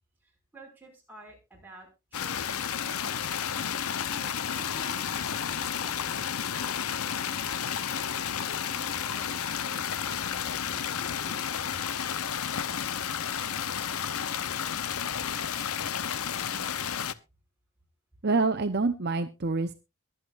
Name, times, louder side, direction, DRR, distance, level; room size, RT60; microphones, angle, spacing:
voice 1, 0.2-1.9 2.2-3.2 4.1-7.2 8.3-12.3, right 1 dB, 10° right, -1 dB, 5.7 m, -52 dB
sound 1, 2.1-17.1, left 8 dB, 75° left, 0.8 m, -32 dB
voice 2, 18.2-19.7, right 3 dB, 45° right, 8 dB, 0.8 m, -26 dB
22.5 x 8.8 x 2.5 m, 0.27 s
head